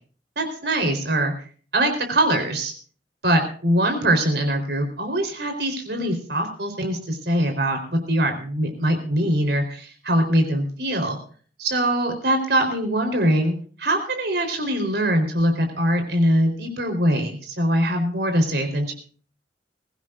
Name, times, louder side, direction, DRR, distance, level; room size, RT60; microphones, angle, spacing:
voice 1, 0.4-1.3 1.7-2.7 3.2-11.2 11.6-18.9, right 1 dB, 65° right, 5 dB, 4.1 m, -22 dB
22.0 x 16.5 x 2.6 m, 0.42 s
head